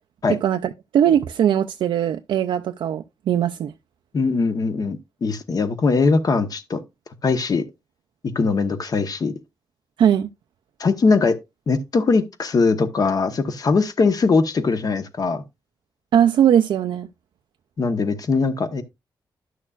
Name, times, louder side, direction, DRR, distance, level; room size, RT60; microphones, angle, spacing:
voice 1, 0.4-3.7 10.0-10.3 16.1-17.1, right 9 dB, 90° right, 0.4 m, -20 dB
voice 2, 4.1-6.8 7.2-7.7 8.3-9.3 10.8-11.4 11.7-15.4 17.8-18.8, left 4 dB, 50° left, 1.1 m, -21 dB
11.0 x 6.4 x 2.4 m
wide cardioid pair, 110°, 8 cm